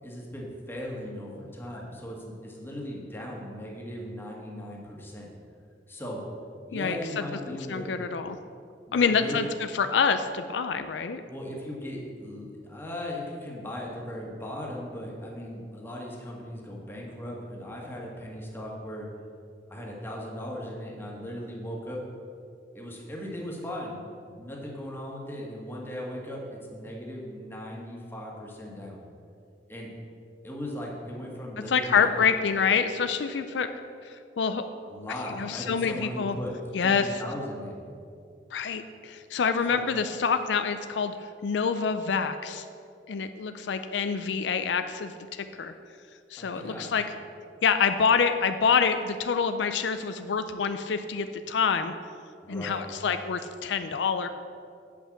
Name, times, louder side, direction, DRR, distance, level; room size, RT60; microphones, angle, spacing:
voice 1, 0.0-5.3 5.9-6.2 6.7-7.9 8.9-9.4 11.2-19.1 19.7-22.0 22.7-24.0 24.3-29.0 29.7-29.9 30.4-32.2 34.8-36.5 36.8-37.8 39.7-39.8 46.4-46.9 52.4-52.9, left 1 dB, 15° left, -3 dB, 1.7 m, -38 dB
voice 2, 6.7-8.4 8.9-9.5 9.7-11.2 31.7-33.7 34.0-34.6 35.4-36.4 36.7-37.1 38.5-42.6 43.1-45.7 46.3-47.0 47.6-51.9 52.5-54.3, left 6 dB, 75° left, 9 dB, 0.4 m, -26 dB
8.6 x 5.7 x 7.4 m, 2.4 s
head